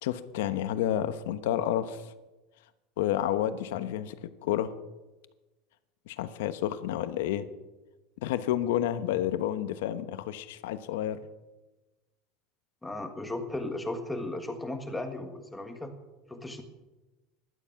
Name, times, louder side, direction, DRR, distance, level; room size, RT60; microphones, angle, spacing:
voice 1, 0.0-2.0 3.0-4.7 6.1-7.5 8.2-11.2, left 11 dB, 85° left, 11 dB, 1.1 m, -30 dB
voice 2, 12.8-15.9 16.3-16.6, left 2 dB, 5° left, 5 dB, 1.4 m, -35 dB
16.0 x 11.5 x 5.9 m, 1.1 s
supercardioid pair, 165°, 0 cm